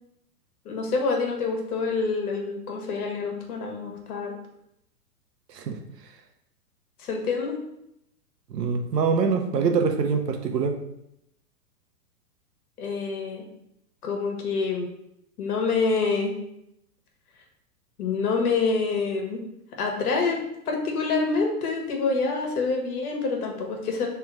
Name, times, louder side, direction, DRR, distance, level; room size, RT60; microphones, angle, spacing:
voice 1, 0.6-4.3 7.0-7.6 12.8-13.4 14.0-14.9 15.4-16.4 18.0-19.4 19.8-24.1, left 4 dB, 65° left, 2 dB, 1.3 m, -26 dB
voice 2, 8.5-10.7, right 5 dB, 90° right, 5 dB, 0.8 m, -24 dB
3.4 x 3.1 x 4.7 m, 0.80 s
hypercardioid pair, 125°, 47 cm